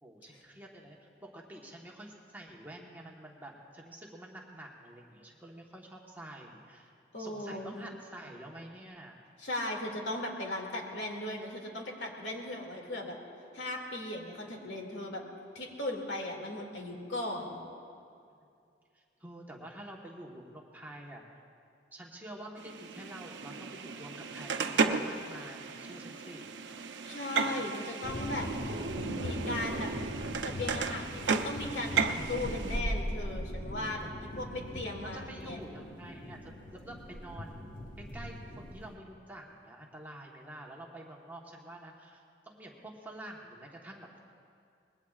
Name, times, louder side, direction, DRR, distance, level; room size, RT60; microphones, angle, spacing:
voice 1, 0.0-6.9 7.2-9.2 14.5-14.7 18.9-21.2 21.9-26.5 34.4-34.6 35.0-37.7 38.0-44.2, right 1 dB, 10° right, -2 dB, 1.2 m, -48 dB
voice 2, 7.1-7.9 9.4-13.2 13.5-15.2 15.5-17.6 27.0-28.5 29.2-29.9 30.4-35.6, left 1 dB, 75° left, 0 dB, 2.3 m, -37 dB
sound 1, 22.6-32.8, right 5 dB, 75° right, 0.7 m, -34 dB
sound 2, 28.0-39.0, equal, 45° left, 1.5 m, -40 dB
25.0 x 20.5 x 2.4 m, 2.4 s
head